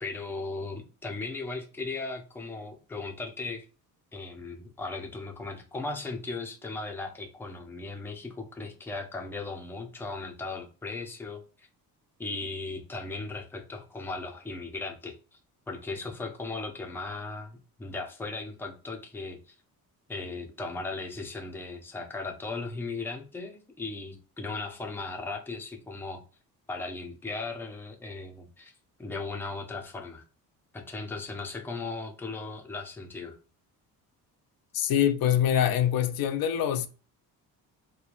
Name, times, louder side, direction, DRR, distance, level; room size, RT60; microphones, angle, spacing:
voice 1, 0.0-3.7 4.1-11.7 12.2-15.1 15.7-19.5 20.1-26.2 26.7-28.7 29.0-30.2 30.7-33.4, left 3 dB, 5° left, 0.5 m, -37 dB
voice 2, 34.7-36.9, left 10 dB, 70° left, 0.5 m, -24 dB
3.0 x 2.2 x 2.4 m
cardioid pair, 135°, 37 cm